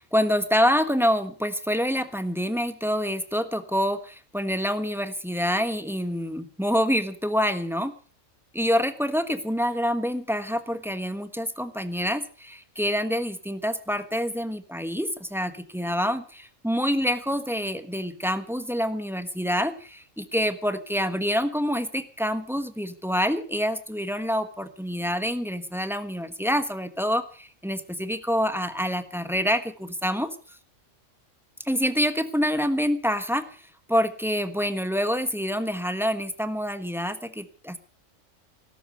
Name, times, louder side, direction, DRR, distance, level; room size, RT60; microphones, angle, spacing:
voice 1, 0.1-4.0 4.3-7.9 8.5-12.2 12.8-16.2 16.6-19.7 20.2-27.2 27.6-29.6 30.0-30.3 31.7-33.4 33.9-37.8, equal, ahead, 11 dB, 1.2 m, -26 dB
16.5 x 13.0 x 6.4 m, 0.39 s
omnidirectional pair, 1.3 m